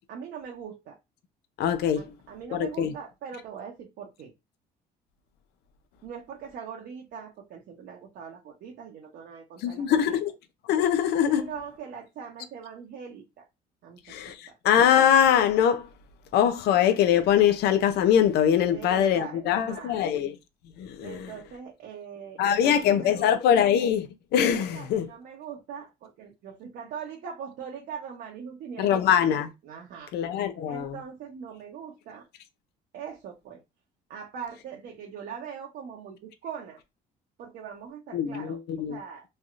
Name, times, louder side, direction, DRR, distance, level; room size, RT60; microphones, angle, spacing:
voice 1, 0.1-1.0 2.0-4.3 6.0-10.2 11.3-13.5 13.8-14.6 18.7-20.1 21.0-23.3 24.5-29.2 29.6-30.1 30.7-32.3 32.9-33.6 34.1-36.8 37.4-39.2, right 7 dB, 70° right, 0.8 m, -41 dB
voice 2, 1.6-2.0 2.5-2.9 9.6-10.3 10.7-11.5 14.1-15.9 16.3-20.4 20.8-21.3 22.4-25.1 28.8-29.5 30.1-31.0 38.1-39.0, left 9 dB, 75° left, 0.5 m, -23 dB
3.2 x 2.7 x 2.4 m
cardioid pair, 110°, 17 cm